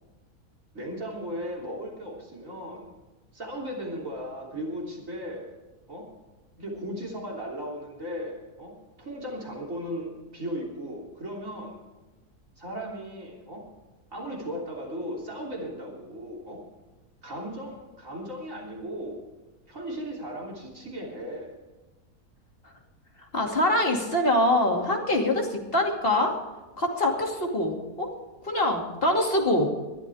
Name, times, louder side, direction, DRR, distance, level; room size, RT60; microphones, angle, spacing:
voice 1, 0.7-2.9 3.3-5.5 5.9-6.1 6.6-11.8 12.6-13.7 14.1-16.6 17.2-19.2 19.7-21.6, equal, 55° right, -2 dB, 3.7 m, -36 dB
voice 2, 23.3-26.3 26.8-28.1 28.4-29.7, left 1 dB, 35° left, 0 dB, 2.8 m, -24 dB
21.0 x 12.5 x 3.6 m, 1.2 s
omnidirectional pair, 1.6 m